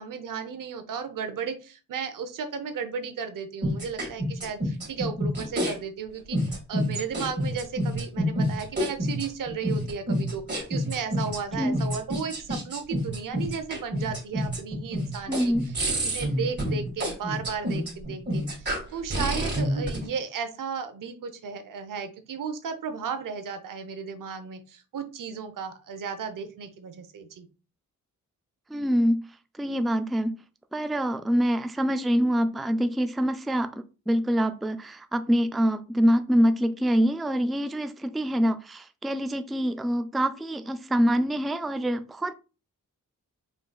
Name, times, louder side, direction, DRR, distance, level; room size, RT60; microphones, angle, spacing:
voice 1, 0.0-15.5 15.9-27.5, right 6 dB, 75° right, 0.8 m, -34 dB
sound 1, 3.6-5.7 6.3-20.0, equal, 35° right, 1.9 m, -28 dB
voice 2, 15.3-15.7 28.7-29.3 29.6-30.4 30.7-42.3, equal, ahead, 0.3 m, -25 dB
4.9 x 3.7 x 2.3 m
cardioid pair, 70°, 32 cm